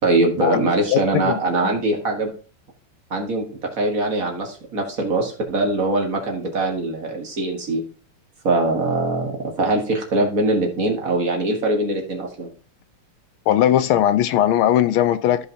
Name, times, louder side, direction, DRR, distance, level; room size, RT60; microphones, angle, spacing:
voice 1, 0.0-2.3 3.1-7.8 8.4-12.5, right 2 dB, 40° right, 1.7 m, -22 dB
voice 2, 0.9-1.7 13.5-15.5, left 11 dB, 80° left, 1.3 m, -19 dB
15.0 x 5.1 x 2.8 m
omnidirectional pair, 2.4 m